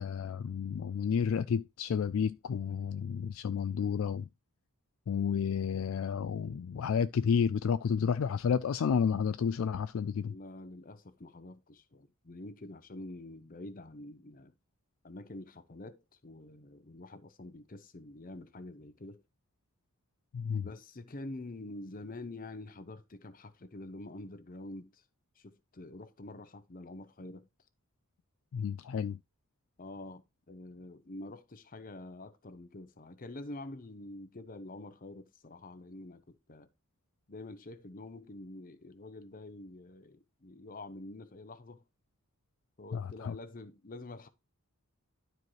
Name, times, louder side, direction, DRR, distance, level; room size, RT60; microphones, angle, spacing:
voice 1, 0.0-4.3 5.1-10.4 20.3-20.7 28.5-29.2 42.9-43.3, left 7 dB, 65° left, 0.3 m, -31 dB
voice 2, 10.3-14.5 15.0-19.2 20.6-25.0 25.4-27.5 29.8-36.7 37.3-41.8 42.8-44.3, left 2 dB, 40° left, 0.7 m, -47 dB
12.0 x 4.5 x 3.1 m
head